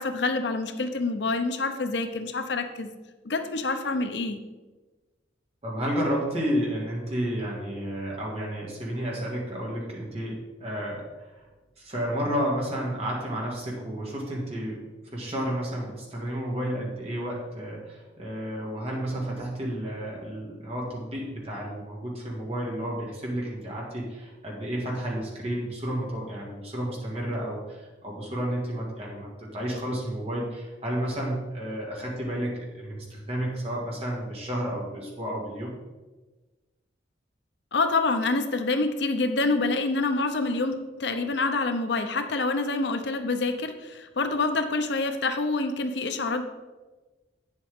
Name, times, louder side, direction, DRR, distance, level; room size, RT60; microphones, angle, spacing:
voice 1, 0.0-2.9 3.2-4.4 37.7-46.4, left 3 dB, 70° left, 8 dB, 0.7 m, -27 dB
voice 2, 5.6-11.5 11.8-35.7, equal, 35° right, -3 dB, 2.1 m, -31 dB
9.1 x 7.3 x 3.6 m, 1.2 s
head